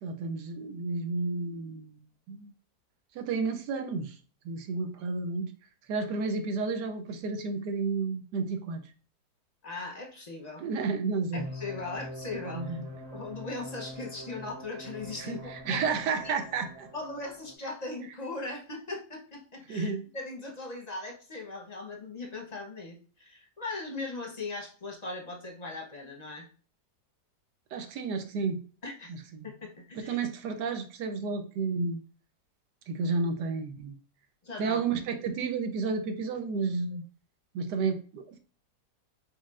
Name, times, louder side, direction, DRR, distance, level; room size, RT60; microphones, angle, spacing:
voice 1, 0.0-2.0 2.3-2.5 3.1-4.2 4.4-5.5 5.9-8.8 10.6-11.5 12.5-12.8 15.2-16.9 19.7-20.0 27.7-28.6 29.1-29.5 30.0-32.0 32.9-33.9 34.6-37.0 37.5-38.4, right 4 dB, 80° right, 7 dB, 1.3 m, -31 dB
voice 2, 9.6-10.6 11.3-12.7 13.1-15.4 15.7-16.0 16.2-16.3 16.9-26.4 28.8-29.1 29.4-30.2 34.4-34.8, left 3 dB, 35° left, 1 dB, 0.7 m, -39 dB
sound 1, 11.3-17.5, equal, 40° right, 1.7 m, -44 dB
4.5 x 4.3 x 2.4 m, 0.39 s
omnidirectional pair, 1.8 m